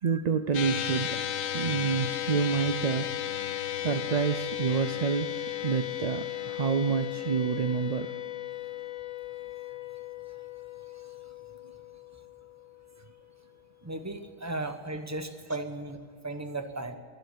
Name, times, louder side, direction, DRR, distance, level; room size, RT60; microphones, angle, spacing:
voice 1, 0.0-1.2 1.5-3.1 3.8-5.3 5.6-8.1 15.5-15.6, right 6 dB, 55° right, 9 dB, 0.4 m, -28 dB
sound 1, 0.5-13.1, left 11 dB, 75° left, 1.2 m, -35 dB
voice 2, 13.8-17.0, right 2 dB, 15° right, 7 dB, 1.0 m, -36 dB
22.0 x 7.9 x 8.4 m, 2.1 s
omnidirectional pair, 1.4 m